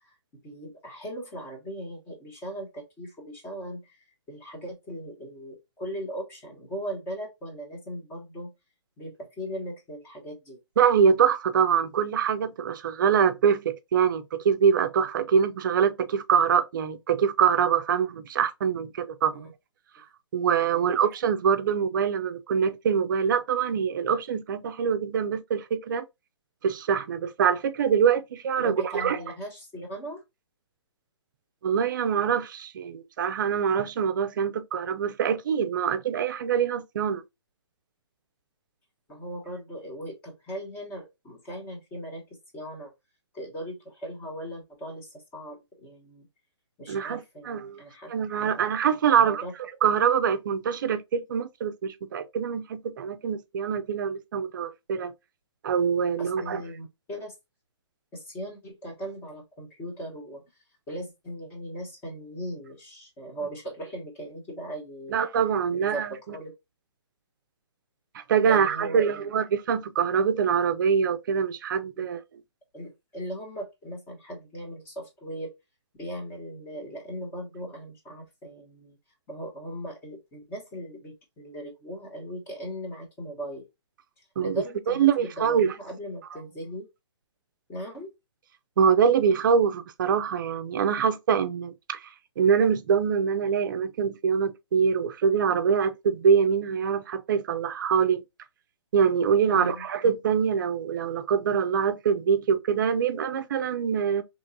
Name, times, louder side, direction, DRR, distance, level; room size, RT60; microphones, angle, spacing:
voice 1, 0.4-8.5 9.0-10.6 19.3-19.5 20.7-21.0 28.6-30.2 39.1-42.9 43.3-46.3 46.8-48.1 48.4-48.6 49.1-49.5 56.2-57.3 58.1-60.4 60.9-65.2 65.7-66.5 68.4-69.3 72.0-72.1 72.7-75.5 75.9-79.0 79.3-83.7 84.4-86.9 87.7-88.1 99.5-99.9, equal, 15° left, 1.1 m, -38 dB
voice 2, 10.8-19.5 20.3-26.0 26.6-29.2 31.6-37.2 46.9-47.8 48.1-49.4 49.8-55.1 55.6-56.6 65.1-66.1 68.1-72.2 84.4-84.5 84.9-85.7 88.8-92.0 92.4-98.2 98.9-104.2, right 7 dB, 45° right, 0.5 m, -24 dB
3.8 x 3.0 x 2.6 m
hypercardioid pair, 160°, 15 cm